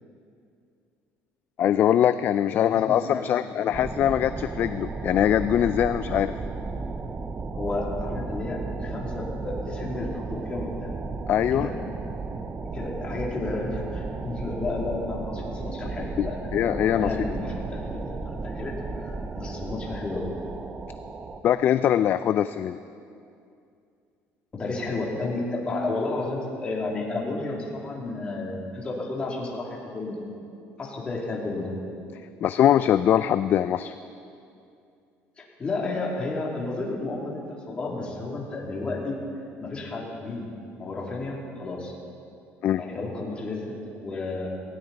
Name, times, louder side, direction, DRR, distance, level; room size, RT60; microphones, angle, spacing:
voice 1, 1.6-6.3 11.3-11.7 16.2-17.1 21.4-22.8 32.4-33.9 42.6-42.8, left 10 dB, 40° left, 12 dB, 0.3 m, -22 dB
voice 2, 2.6-3.7 7.5-10.9 11.5-11.7 12.7-16.6 16.9-20.3 24.5-30.3 30.8-31.7 35.4-37.4 37.7-39.2 39.6-40.5 40.8-41.9 42.7-44.5, left 2 dB, 20° left, -3 dB, 2.8 m, -32 dB
sound 1, 3.7-21.4, right 3 dB, 20° right, 0.6 m, -34 dB
18.0 x 17.5 x 4.1 m, 2.5 s
cardioid pair, 160°, 5 cm